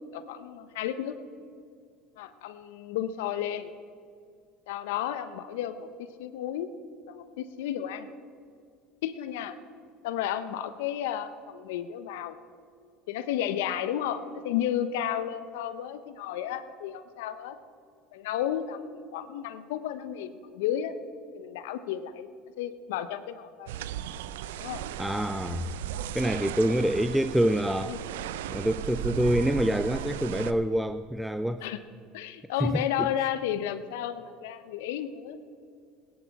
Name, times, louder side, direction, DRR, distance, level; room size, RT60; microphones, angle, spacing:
voice 1, 0.1-1.2 2.2-3.7 4.7-6.7 7.1-8.1 9.0-9.6 10.0-12.4 13.1-17.6 18.1-21.0 21.3-22.3 22.6-23.7 24.6-24.8 27.9-28.0 31.6-31.8 32.1-35.4, left 10 dB, 75° left, 13 dB, 0.8 m, -32 dB
sound 1, 23.7-30.5, right 10 dB, 80° right, 0.5 m, -36 dB
voice 2, 25.0-25.7 26.1-28.0 28.5-31.6 32.6-33.3, equal, 5° right, 9 dB, 0.5 m, -26 dB
19.5 x 10.5 x 4.7 m, 2.3 s
hypercardioid pair, 75°, 0 cm